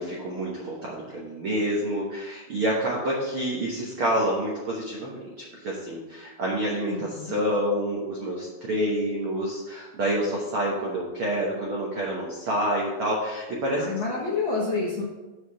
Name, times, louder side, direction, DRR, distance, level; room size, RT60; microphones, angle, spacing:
voice 1, 0.0-13.8, right 1 dB, 80° right, -3 dB, 1.2 m, -28 dB
voice 2, 6.9-7.4 13.8-15.0, left 4 dB, 80° left, -5 dB, 1.0 m, -28 dB
6.7 x 4.8 x 6.9 m, 1.2 s
omnidirectional pair, 4.3 m